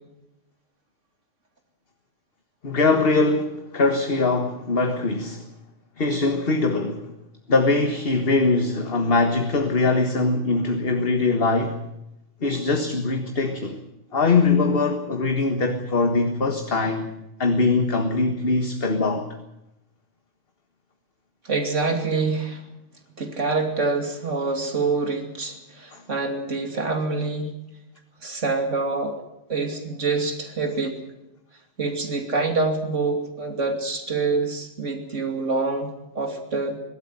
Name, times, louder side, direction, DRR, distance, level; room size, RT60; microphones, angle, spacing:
voice 1, 2.6-5.4 6.0-7.1 7.5-11.8 12.4-13.8 14.1-17.1 17.4-19.4 25.9-26.0, left 3 dB, 50° left, 1.8 m, -22 dB
voice 2, 21.4-22.6 23.2-27.6 28.2-29.2 29.5-31.0 31.8-36.8, right 3 dB, 85° right, 3.1 m, -26 dB
23.0 x 13.0 x 9.8 m
omnidirectional pair, 1.2 m